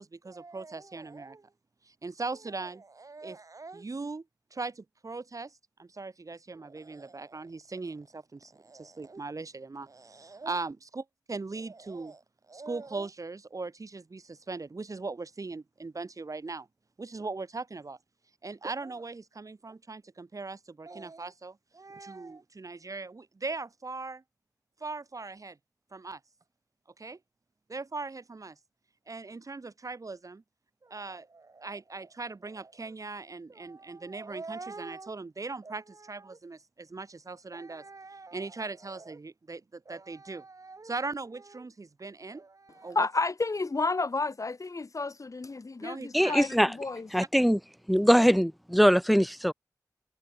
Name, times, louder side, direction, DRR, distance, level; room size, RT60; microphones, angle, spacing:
voice 1, 0.0-1.5 1.8-4.3 4.5-12.2 12.5-16.7 17.0-18.0 18.4-24.2 24.8-25.6 25.9-26.2 27.0-27.2 27.7-28.6 29.1-30.4 30.8-43.1 45.8-46.4, right 3 dB, 55° right, 7.2 m, -39 dB
voice 2, 42.9-47.1, left 3 dB, 55° left, 2.5 m, -31 dB
voice 3, 46.1-46.7 47.1-47.6 47.9-49.5, equal, ahead, 5.8 m, -22 dB
wide cardioid pair, 55°, 7 cm